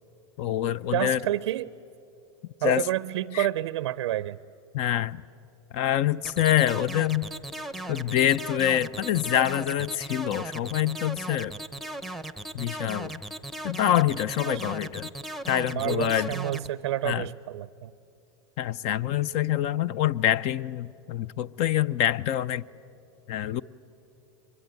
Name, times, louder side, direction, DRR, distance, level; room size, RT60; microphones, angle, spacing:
voice 1, 0.4-1.2 2.6-2.9 3.3-3.5 4.7-5.2 5.7-7.3 7.9-11.5 12.5-13.2 13.6-15.1 15.5-16.3 17.0-17.2 18.6-22.6 23.3-23.6, left 11 dB, 45° left, 0.5 m, -25 dB
voice 2, 0.9-1.7 2.6-4.4 14.5-14.6 15.7-17.9, right 14 dB, 80° right, 0.5 m, -29 dB
sound 1, 6.2-16.7, right 1 dB, ahead, 0.8 m, -37 dB
24.0 x 22.0 x 9.5 m
hypercardioid pair, 115°, 14 cm